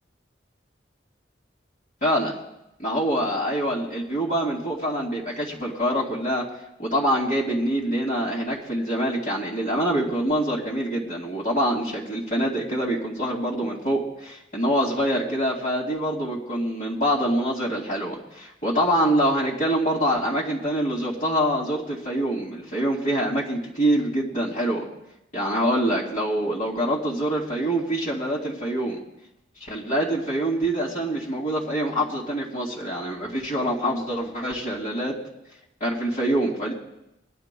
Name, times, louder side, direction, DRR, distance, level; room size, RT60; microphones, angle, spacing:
voice 1, 2.0-2.4 2.8-6.5 6.8-24.9 25.3-29.0 29.7-35.2 35.8-36.7, equal, 50° left, -7 dB, 2.4 m, -25 dB
24.0 x 11.5 x 2.3 m, 0.87 s
head